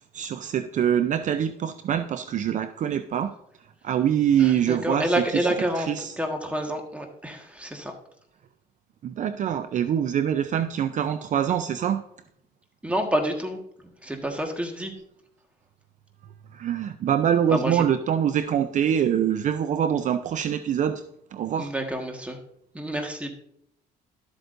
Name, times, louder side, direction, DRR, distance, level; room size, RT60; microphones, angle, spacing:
voice 1, 0.1-3.3 3.8-5.1 5.9-6.1 9.0-12.0 16.5-21.0 21.3-21.7, right 9 dB, 50° right, 11 dB, 0.5 m, -24 dB
voice 2, 4.4-5.9 6.2-7.9 12.8-14.9 17.5-17.8 21.6-22.4 22.7-23.3, right 1 dB, 5° right, 3 dB, 1.5 m, -28 dB
12.5 x 7.9 x 2.6 m, 0.71 s
cardioid pair, 110°, 17 cm